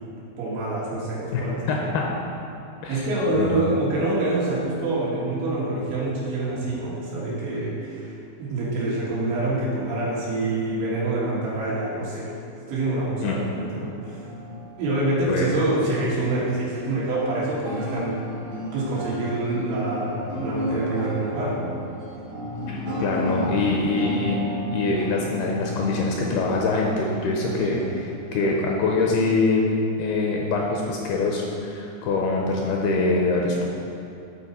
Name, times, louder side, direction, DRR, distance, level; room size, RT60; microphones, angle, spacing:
voice 1, 0.4-1.8 2.9-8.1 8.4-12.4 12.7-14.2 14.8-18.2 18.7-21.7 27.6-27.8 28.4-28.5, right 2 dB, 90° right, -7 dB, 4.0 m, -26 dB
voice 2, 1.3-2.0 2.8-3.1 3.3-3.7 13.2-13.3 15.3-15.5 22.7-33.7, left 3 dB, 80° left, -1 dB, 2.3 m, -24 dB
sound 1, 14.0-28.7, equal, 65° right, 1.5 m, -34 dB
12.0 x 4.2 x 4.2 m, 2.7 s
omnidirectional pair, 5.0 m